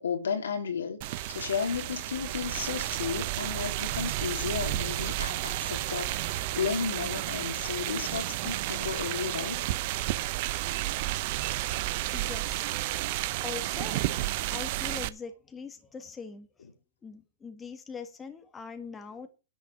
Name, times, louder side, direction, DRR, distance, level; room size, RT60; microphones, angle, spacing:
voice 1, 0.0-9.6, left 6 dB, 85° left, 3.6 m, -33 dB
sound 1, 1.0-15.1, right 16 dB, 50° right, 0.8 m, -32 dB
voice 2, 10.6-11.1 11.4-11.6 12.1-12.6 13.4-16.7 17.0-19.3, left 5 dB, 15° left, 1.7 m, -43 dB
10.5 x 5.8 x 8.3 m
hypercardioid pair, 135°, 0 cm